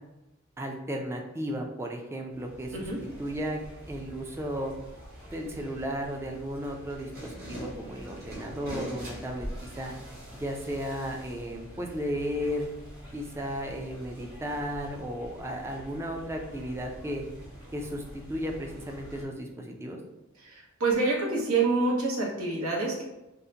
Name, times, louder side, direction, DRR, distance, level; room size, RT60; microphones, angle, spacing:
voice 1, 0.6-3.6 3.9-4.7 5.3-9.9 10.3-12.7 13.1-17.3 17.7-20.0, equal, 10° right, 1 dB, 0.4 m, -34 dB
sound 1, 2.3-19.2, equal, 45° right, 1.2 m, -44 dB
voice 2, 20.4-23.0, right 3 dB, 85° right, -3 dB, 0.9 m, -27 dB
3.7 x 2.1 x 2.7 m, 0.96 s
head